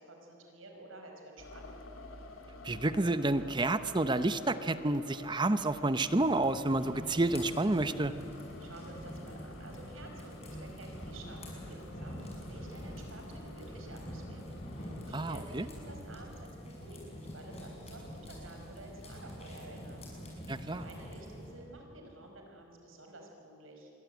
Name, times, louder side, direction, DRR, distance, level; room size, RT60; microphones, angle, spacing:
voice 1, 0.0-1.8 8.6-20.0 20.3-23.9, right 1 dB, 90° right, 3 dB, 5.0 m, -51 dB
sound 1, 1.4-15.9, left 2 dB, 90° left, 2.8 m, -51 dB
voice 2, 2.6-8.1 15.1-15.6 20.5-20.8, right 2 dB, 20° right, 12 dB, 0.7 m, -29 dB
sound 2, 6.0-21.5, equal, 30° left, 6.6 m, -45 dB
26.5 x 22.5 x 9.3 m, 3.0 s
head